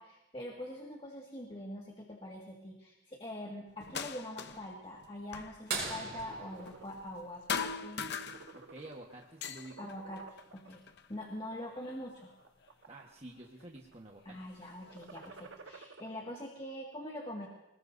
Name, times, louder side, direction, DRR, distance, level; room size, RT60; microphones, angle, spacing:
voice 1, 0.0-8.0 9.8-10.2 10.5-10.8 11.1-12.3 14.3-17.5, left 1 dB, 25° left, -2 dB, 2.0 m, -44 dB
sound 1, 3.8-4.7 5.0-7.2 7.5-8.9 9.2-11.1 11.8-12.7 13.6-13.7 14.3-15.3, left 6 dB, 55° left, 0.9 m, -42 dB
sound 2, 5.7-8.1 10.1-10.2 12.4-12.5 14.2-14.5 15.3-15.4, right 4 dB, 55° right, 7.2 m, -40 dB
sound 3, 6.2-6.9 7.4-7.6 7.9-9.2 9.6-10.7 11.3-11.8 12.4-13.1 13.4-13.9 14.8-16.1, right 4 dB, 70° right, 1.3 m, -53 dB
voice 2, 8.5-9.9 12.9-14.4, right 1 dB, 30° right, -1 dB, 1.4 m, -49 dB
25.5 x 20.0 x 2.7 m, 1.0 s
head